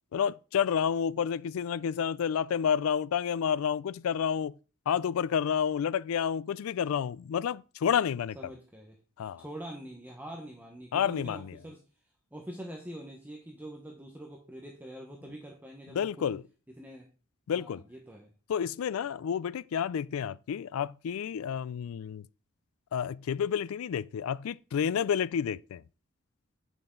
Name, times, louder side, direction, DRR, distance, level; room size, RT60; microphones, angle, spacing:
voice 1, 0.1-4.5 4.9-8.4 9.2-9.4 10.9-11.6 15.9-16.4 17.5-17.8 18.5-22.2 22.9-25.8, left 8 dB, 75° left, 0.3 m, -30 dB
voice 2, 8.3-9.0 9.4-11.8 12.3-16.3 16.8-17.1 17.5-18.3, right 1 dB, 10° right, 1.0 m, -44 dB
8.7 x 6.1 x 3.8 m
head